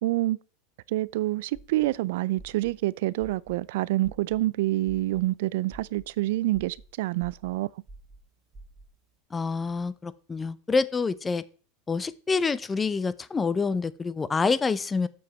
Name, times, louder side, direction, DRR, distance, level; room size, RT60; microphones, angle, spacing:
voice 1, 0.0-0.4 0.9-7.7, right 17 dB, 70° right, 0.3 m, -27 dB
sound 1, 1.1-9.2, right 2 dB, 25° right, 2.1 m, -50 dB
voice 2, 9.3-11.4 11.9-15.1, left 4 dB, 15° left, 0.5 m, -27 dB
7.7 x 7.1 x 4.3 m
supercardioid pair, 125°, 0 cm